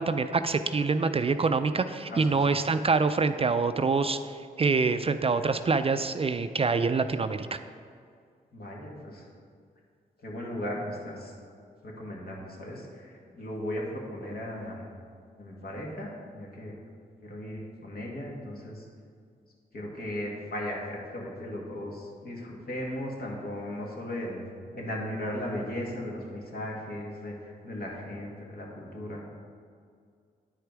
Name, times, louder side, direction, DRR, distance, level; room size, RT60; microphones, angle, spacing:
voice 1, 0.0-4.2 4.6-7.6, right 4 dB, 35° right, 10 dB, 0.4 m, -25 dB
voice 2, 8.5-9.3 10.2-11.3 11.8-14.8 15.4-16.8 17.2-18.9 19.7-24.5 24.7-29.2, left 1 dB, 60° left, -2 dB, 2.0 m, -37 dB
9.8 x 4.9 x 4.6 m, 2.2 s
cardioid pair, 50°, 17 cm